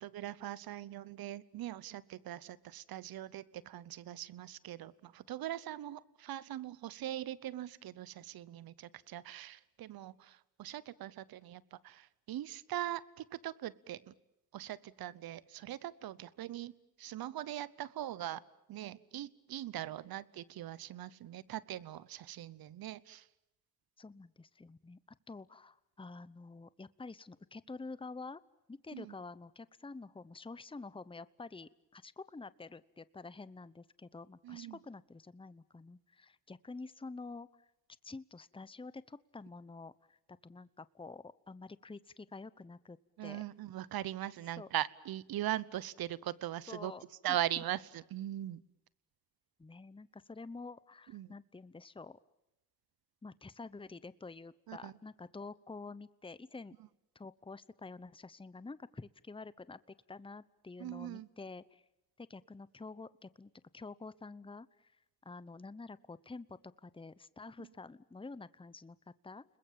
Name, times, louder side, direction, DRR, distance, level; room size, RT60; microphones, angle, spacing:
voice 1, 0.0-14.1 14.5-16.7 17.0-18.4 18.7-23.3 28.9-29.1 34.4-34.8 43.2-46.9 47.2-48.6 51.1-51.3 54.7-55.0 60.8-61.3, right 13 dB, 70° right, 20 dB, 0.9 m, -41 dB
voice 2, 24.0-25.0 25.3-28.4 28.7-37.7 38.0-40.2 40.4-43.4 44.6-44.7 46.7-47.0 47.3-47.4 49.6-52.2 53.2-56.7 57.1-61.8 62.2-64.9 65.2-69.4, left 3 dB, 15° left, 17 dB, 0.9 m, -48 dB
30.0 x 21.0 x 7.4 m, 0.89 s
supercardioid pair, 45°, 37 cm